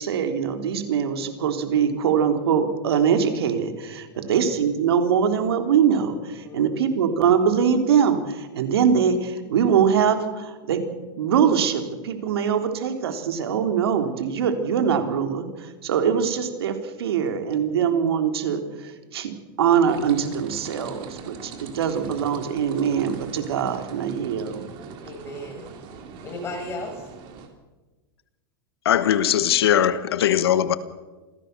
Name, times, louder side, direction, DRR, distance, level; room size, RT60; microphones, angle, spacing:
voice 1, 0.0-10.8 11.2-24.6, right 7 dB, 90° right, 3.4 m, -23 dB
sound 1, 19.9-27.5, right 5 dB, 40° right, 3.7 m, -41 dB
voice 2, 25.0-25.8 26.2-27.1, left 1 dB, 20° left, 6.3 m, -35 dB
voice 3, 28.8-30.7, left 10 dB, 90° left, 1.5 m, -20 dB
27.0 x 16.5 x 6.8 m
supercardioid pair, 150°, 13 cm